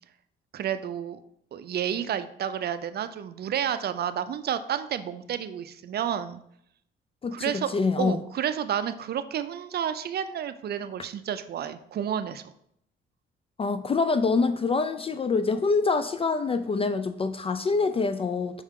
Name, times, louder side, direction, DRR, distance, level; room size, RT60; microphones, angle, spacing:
voice 1, 0.5-1.2 1.5-6.4 7.3-12.4, right 9 dB, 55° right, 0.5 m, -30 dB
voice 2, 7.2-8.2 13.6-18.6, left 4 dB, 30° left, 0.3 m, -25 dB
5.4 x 4.8 x 3.6 m
cardioid pair, 90°, 20 cm